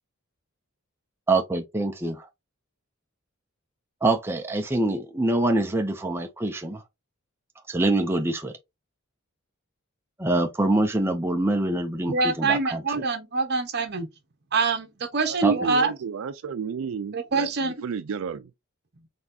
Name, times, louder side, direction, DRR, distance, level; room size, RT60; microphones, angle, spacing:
voice 1, 1.3-2.3 4.0-6.8 7.7-8.6 10.2-12.8 15.4-15.5, right 2 dB, 10° right, 0.4 m, -25 dB
voice 2, 12.1-14.1 14.5-15.9 17.1-17.8, right 4 dB, 50° right, 0.9 m, -25 dB
voice 3, 15.2-18.5, right 6 dB, 75° right, 0.4 m, -33 dB
4.1 x 3.4 x 2.7 m
head